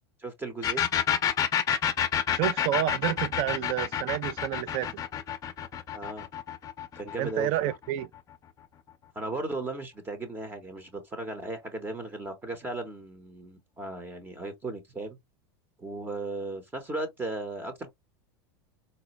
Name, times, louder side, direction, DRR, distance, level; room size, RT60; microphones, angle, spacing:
voice 1, 0.2-0.9 5.9-6.3 6.9-7.7 9.1-15.2 15.8-17.9, right 2 dB, 15° right, 0.8 m, -36 dB
sound 1, 0.6-8.1, left 9 dB, 25° left, 0.6 m, -29 dB
voice 2, 2.3-4.9 7.2-8.1, right 14 dB, 45° right, 0.4 m, -29 dB
4.1 x 2.1 x 2.9 m
supercardioid pair, 125°, 13 cm